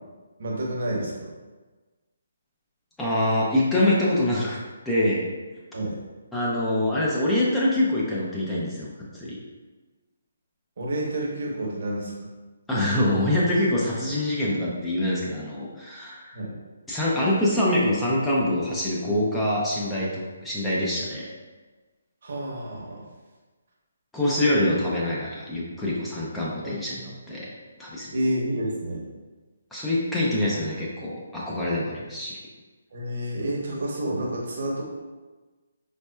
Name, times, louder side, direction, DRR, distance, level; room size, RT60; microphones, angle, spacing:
voice 1, 0.4-1.3 5.7-6.0 10.8-12.1 16.3-16.6 22.2-23.1 26.6-26.8 28.1-29.1 32.9-34.8, right 1 dB, 55° right, -3 dB, 0.9 m, -29 dB
voice 2, 3.0-4.6 4.9-5.2 6.3-9.4 12.7-16.4 16.9-21.3 24.1-27.5 27.8-28.1 29.7-32.4, left 1 dB, 5° left, -7 dB, 0.5 m, -25 dB
4.1 x 2.2 x 2.2 m, 1.3 s
hypercardioid pair, 155°, 0 cm